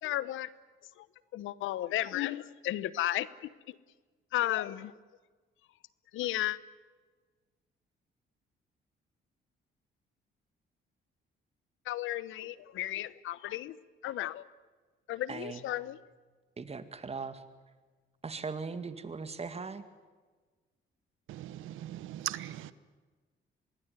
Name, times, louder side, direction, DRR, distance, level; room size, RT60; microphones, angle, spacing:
voice 1, 0.0-0.5 1.0-1.1 1.3-3.8 4.3-4.9 6.1-6.6 11.9-13.8 14.0-14.4 15.1-16.0, left 14 dB, 85° left, 18 dB, 0.9 m, -34 dB
voice 2, 15.3-15.6 16.6-17.4 18.2-19.8, right 4 dB, 30° right, 10 dB, 2.1 m, -39 dB
voice 3, 21.3-22.7, right 13 dB, 85° right, 16 dB, 1.0 m, -39 dB
24.5 x 19.5 x 9.5 m, 1.4 s
cardioid pair, 90°, 20 cm